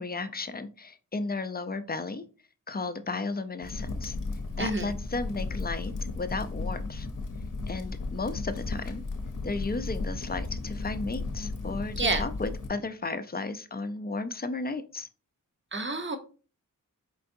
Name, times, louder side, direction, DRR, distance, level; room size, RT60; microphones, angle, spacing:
voice 1, 0.0-2.2 2.7-4.2 4.6-7.1 7.7-9.0 9.4-15.1, left 3 dB, 30° left, 11 dB, 0.4 m, -34 dB
Crackle, 3.6-12.7, left 3 dB, 65° left, 0.7 m, -35 dB
voice 2, 4.6-4.9 12.0-12.2 15.7-16.2, right 2 dB, 35° right, 7 dB, 0.7 m, -28 dB
4.6 x 3.4 x 2.6 m, 0.36 s
wide cardioid pair, 60°, 34 cm